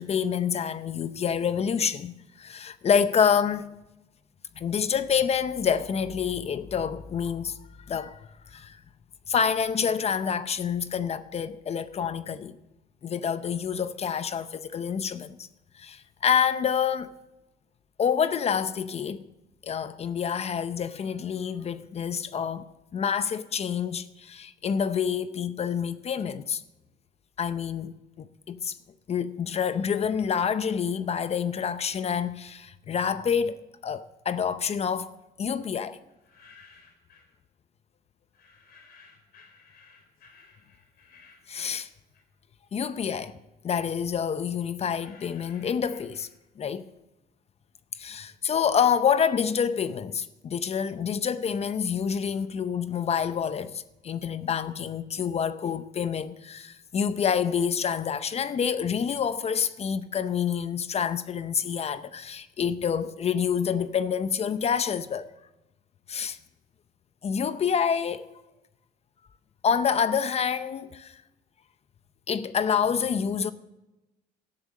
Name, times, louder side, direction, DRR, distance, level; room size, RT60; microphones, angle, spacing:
voice 1, 0.0-3.7 4.6-7.6 7.9-8.2 8.5-8.8 9.3-12.6 13.0-15.4 15.8-17.1 18.0-19.2 19.6-22.7 22.9-26.6 27.4-28.8 29.1-36.0 41.5-41.9 42.7-43.3 43.6-46.3 46.6-46.9 48.0-65.3 66.1-66.4 67.2-68.2 69.6-71.2 72.3-73.5, left 7 dB, 40° left, 0.6 m, -27 dB
sound 1, 36.1-37.3 38.3-42.6 42.9-46.7, left 4 dB, 65° left, 4.0 m, -56 dB
12.5 x 10.5 x 6.4 m
cardioid pair, 110°, 17 cm